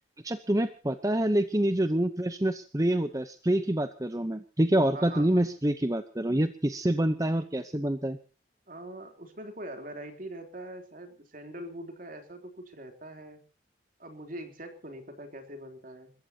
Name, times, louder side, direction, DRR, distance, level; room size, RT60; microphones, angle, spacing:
voice 1, 0.2-8.2, right 1 dB, 20° right, 10 dB, 0.8 m, -26 dB
voice 2, 4.9-5.5 8.7-13.4 14.0-16.1, right 1 dB, 45° right, 5 dB, 3.5 m, -43 dB
29.5 x 15.0 x 2.9 m, 0.36 s
head